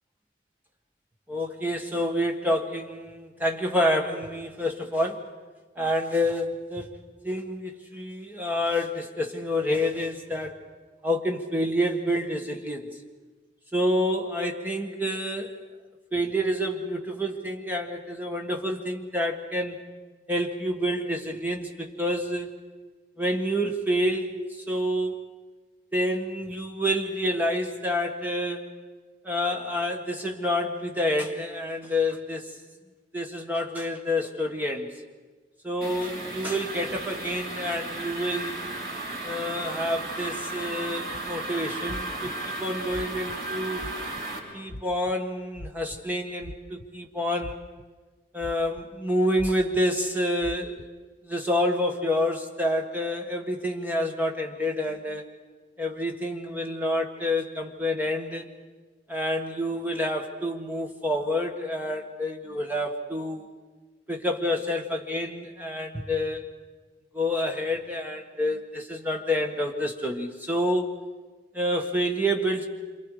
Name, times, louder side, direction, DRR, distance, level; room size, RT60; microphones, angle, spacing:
voice 1, 1.3-5.3 5.8-7.0 7.2-10.6 11.0-12.9 13.7-15.6 16.1-19.8 20.3-22.5 23.2-24.3 24.7-25.2 25.9-28.7 29.2-32.5 33.1-34.9 35.6-38.5 39.2-43.8 44.5-47.6 48.3-50.9 51.2-55.2 55.8-58.5 59.1-63.5 64.1-66.6 67.1-70.9 71.5-72.7, left 1 dB, 10° right, 2 dB, 1.6 m, -28 dB
sound 1, 35.8-44.4, right 2 dB, 55° right, 6.0 m, -35 dB
sound 2, 41.1-41.3 41.9-42.3 42.9-43.4 43.8-44.2 44.7-45.1 45.5-46.0 46.4-47.1 47.4-47.8 48.4-48.8 49.4-49.8 50.4-50.9, left 1 dB, 80° left, 0.9 m, -40 dB
28.0 x 27.5 x 5.0 m, 1.3 s
head